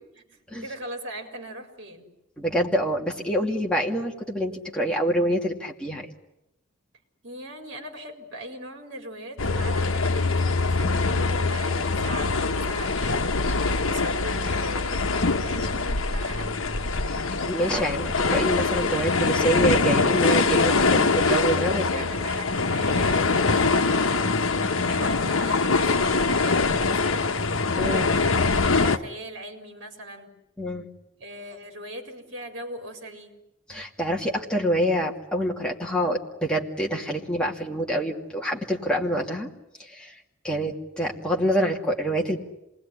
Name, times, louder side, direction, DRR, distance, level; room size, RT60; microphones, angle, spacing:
voice 1, 0.3-2.1 7.2-13.4 13.6-16.6 21.9-26.1 26.4-27.3 27.8-30.3 31.2-33.4, right 1 dB, 55° right, 4 dB, 4.3 m, -39 dB
voice 2, 2.4-6.1 17.1-22.0 27.7-28.1 30.6-30.9 33.7-39.5 39.8-40.2 40.4-42.4, equal, 5° left, -1 dB, 2.5 m, -26 dB
sound 1, 9.4-29.0, left 3 dB, 80° left, 1.1 m, -23 dB
27.5 x 20.0 x 10.0 m, 0.90 s
head